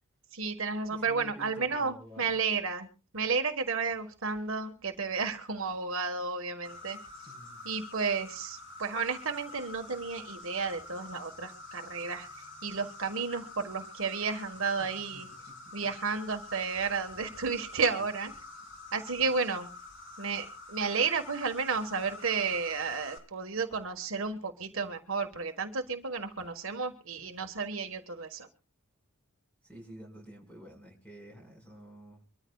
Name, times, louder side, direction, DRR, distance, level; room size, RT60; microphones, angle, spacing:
voice 1, 0.3-2.9 3.1-7.0 7.6-12.3 12.6-15.3 15.7-18.3 18.9-19.7 20.2-28.5, right 5 dB, 65° right, 5 dB, 1.5 m, -32 dB
voice 2, 0.9-2.3 7.3-7.7 14.6-15.7 19.2-19.3 29.6-32.2, equal, 5° left, 1 dB, 5.4 m, -51 dB
Insect, 6.6-23.2, left 2 dB, 55° left, 3.4 m, -47 dB
24.5 x 14.0 x 2.4 m, 0.35 s
head